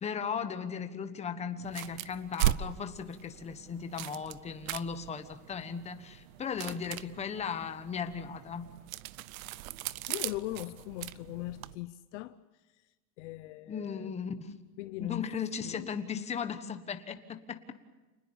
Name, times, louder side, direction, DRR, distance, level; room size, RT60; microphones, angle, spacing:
voice 1, 0.0-8.7 13.7-14.5 15.0-17.6, left 6 dB, 15° left, 1.3 m, -37 dB
sound 1, 1.6-11.8, right 14 dB, 60° right, 0.8 m, -38 dB
voice 2, 10.1-12.4 13.2-14.1 14.8-15.3 15.6-16.0, left 17 dB, 50° left, 0.8 m, -40 dB
29.0 x 20.5 x 7.2 m
supercardioid pair, 155°, 45 cm